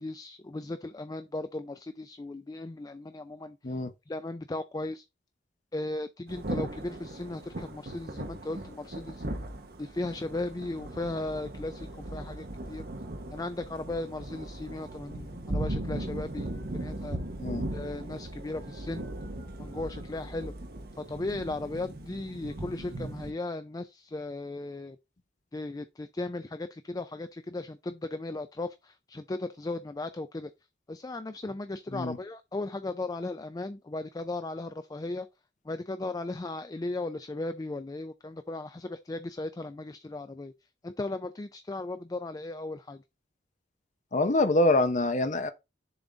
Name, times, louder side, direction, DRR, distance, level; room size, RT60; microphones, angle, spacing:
voice 1, 0.0-3.6 4.1-5.0 5.7-9.2 9.8-12.9 13.3-17.2 17.7-19.1 19.6-20.5 21.0-25.0 25.5-30.5 30.9-35.3 35.7-40.5 40.8-43.0, left 2 dB, 20° left, 0.4 m, -36 dB
Thunder / Rain, 6.3-23.3, right 1 dB, 55° right, 1.1 m, -38 dB
voice 2, 44.1-45.5, left 2 dB, 40° left, 0.7 m, -25 dB
7.0 x 3.8 x 3.9 m
head